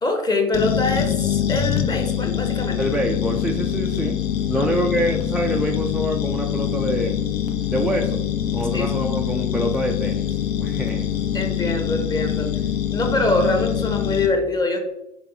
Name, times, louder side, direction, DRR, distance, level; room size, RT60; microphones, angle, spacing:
voice 1, 0.0-2.8 4.6-4.7 8.7-8.9 11.3-12.5 12.9-14.8, left 2 dB, 20° left, 4 dB, 1.0 m, -24 dB
sound 1, 0.5-14.3, left 10 dB, 50° left, 0.6 m, -24 dB
voice 2, 2.8-4.2 4.5-7.2 7.7-8.2 8.5-11.1, equal, 5° right, 1 dB, 0.3 m, -25 dB
4.1 x 3.3 x 3.5 m, 0.89 s
hypercardioid pair, 75°, 20 cm